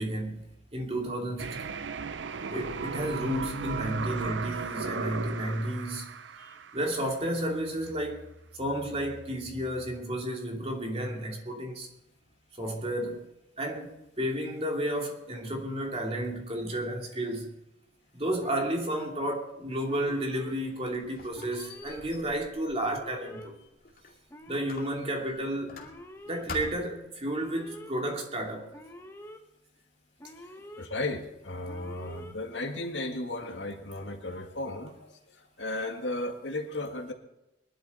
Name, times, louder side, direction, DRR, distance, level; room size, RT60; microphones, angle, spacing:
voice 1, 0.0-1.8 2.5-6.1 6.4-8.2 8.5-11.9 12.6-13.3 13.6-17.5 18.1-23.5 24.5-25.8 26.3-28.7, right 1 dB, 35° right, 2.9 m, -32 dB
sound 1, 1.4-7.3, right 5 dB, 85° right, 0.6 m, -36 dB
Alarm, 18.4-19.1 19.9-20.5 21.3-22.0 22.8-23.5 24.3-25.0 25.8-26.4 27.2-27.9 28.7-29.4 30.2-30.9 31.7-32.3, equal, 15° left, 1.3 m, -46 dB
Squeak, 20.5-24.2 24.7-26.2 26.5-27.0, left 3 dB, 50° left, 2.5 m, -45 dB
voice 2, 30.8-37.1, left 2 dB, 80° left, 2.0 m, -35 dB
21.0 x 12.0 x 4.3 m
head